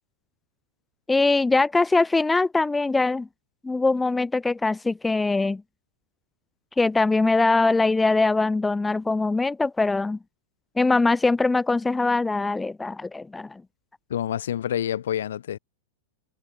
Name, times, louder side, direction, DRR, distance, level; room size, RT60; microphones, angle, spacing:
voice 1, 1.1-3.3 3.6-5.6 6.8-10.2 10.8-13.6, left 3 dB, 5° left, 0.4 m, -22 dB
voice 2, 14.1-15.6, left 10 dB, 85° left, 3.2 m, -27 dB
supercardioid pair, 175°, 0 cm